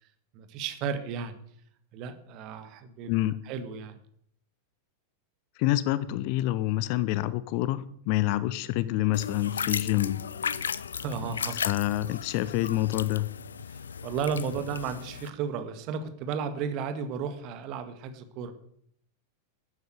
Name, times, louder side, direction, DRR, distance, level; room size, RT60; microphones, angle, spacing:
voice 1, 0.3-1.4 1.9-3.1 3.5-4.0 10.6-11.6 13.7-18.6, right 6 dB, 40° right, 9 dB, 1.9 m, -34 dB
voice 2, 3.1-3.4 5.6-10.2 11.6-13.3, left 15 dB, 45° left, 16 dB, 0.8 m, -27 dB
sound 1, 9.1-15.3, left 7 dB, 70° left, 0.5 m, -35 dB
13.0 x 9.4 x 7.9 m, 0.68 s
figure-of-eight pair, 90°, 0 cm